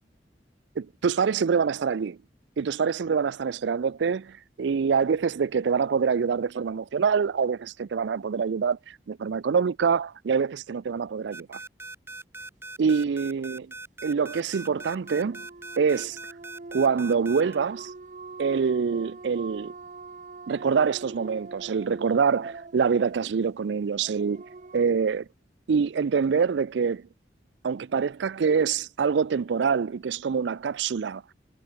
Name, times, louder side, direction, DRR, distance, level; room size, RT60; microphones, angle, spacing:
voice 1, 0.8-2.2 2.6-11.6 12.8-13.7 14.0-15.4 15.8-16.2 16.7-17.9 18.4-19.7 20.5-24.4 24.7-25.3 25.7-27.0 27.6-31.2, right 6 dB, 80° right, 0.4 m, -25 dB
sound 1, 11.3-17.6, right 3 dB, 15° right, 1.6 m, -40 dB
sound 2, 14.3-24.9, right 3 dB, 45° right, 0.8 m, -43 dB
head